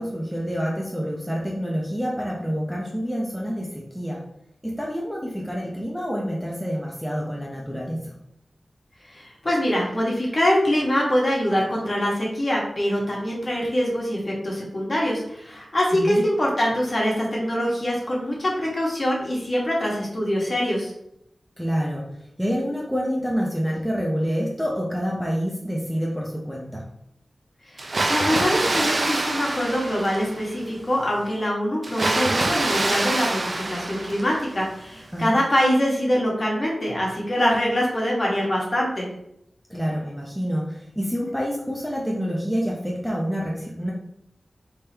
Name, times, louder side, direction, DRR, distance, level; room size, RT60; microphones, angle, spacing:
voice 1, 0.0-4.2 4.6-8.0 15.9-16.2 21.6-22.1 22.4-26.8 35.1-35.4 39.7-43.9, equal, ahead, -3 dB, 0.8 m, -27 dB
voice 2, 9.1-20.9 27.7-39.1, equal, 40° left, -3 dB, 1.6 m, -24 dB
Water, 27.8-30.6 31.8-34.6, right 2 dB, 55° right, 0.7 m, -25 dB
5.0 x 3.6 x 2.9 m, 0.78 s
wide cardioid pair, 85°, 0 cm